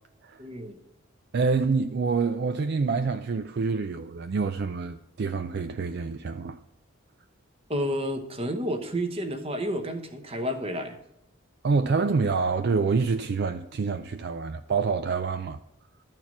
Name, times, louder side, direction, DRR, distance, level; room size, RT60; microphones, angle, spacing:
voice 1, 0.4-0.8 7.7-11.0, equal, 30° right, 1.0 m, -30 dB
voice 2, 1.3-6.6 11.6-15.6, right 4 dB, 55° right, 0.4 m, -27 dB
12.5 x 4.6 x 5.8 m
head